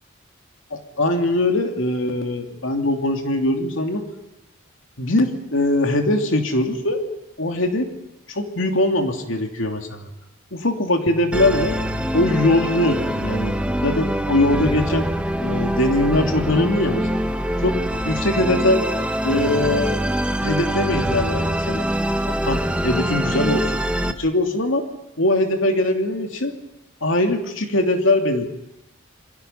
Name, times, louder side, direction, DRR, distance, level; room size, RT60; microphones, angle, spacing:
voice 1, 0.7-4.1 5.0-7.0 7.4-7.9 8.3-10.1 10.5-11.8 12.1-13.5 13.8-15.1 15.4-17.2 17.6-17.8 18.0-18.8 19.2-19.9 20.4-21.9 22.3-23.7 24.1-24.8 25.2-26.5 27.0-28.5, left 1 dB, 70° left, 4 dB, 2.8 m, -21 dB
Bass guitar, 11.1-17.3, left 5 dB, 35° left, 1.1 m, -42 dB
Musical instrument, 11.3-24.1, equal, 5° right, 1.0 m, -24 dB
28.0 x 23.0 x 5.7 m, 0.88 s
head